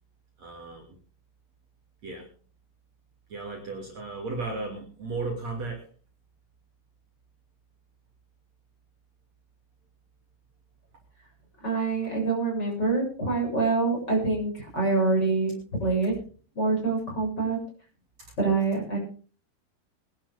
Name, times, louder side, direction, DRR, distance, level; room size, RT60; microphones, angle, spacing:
voice 1, 0.4-1.0 2.0-2.3 3.3-5.9, right 3 dB, 45° right, 0 dB, 3.7 m, -35 dB
voice 2, 11.6-15.5 15.8-16.1 16.6-17.6 18.4-19.0, right 3 dB, 25° left, 0 dB, 7.7 m, -25 dB
23.0 x 11.5 x 3.6 m, 0.39 s
omnidirectional pair, 4.6 m